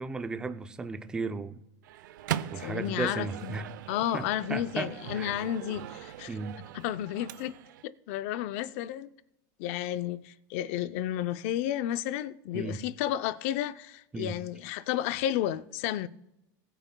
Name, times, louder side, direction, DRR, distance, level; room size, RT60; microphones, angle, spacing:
voice 1, 0.0-1.6 2.5-3.7 4.1-5.3 6.3-6.5 12.5-12.8 14.1-14.3, right 4 dB, 10° right, 0.4 m, -35 dB
Microwave oven, 1.8-7.8, right 12 dB, 85° right, 0.6 m, -40 dB
voice 2, 2.6-6.3 6.7-7.6 7.8-9.1 9.6-16.1, left 12 dB, 50° left, 0.5 m, -32 dB
20.0 x 9.0 x 2.2 m
supercardioid pair, 170°, 10 cm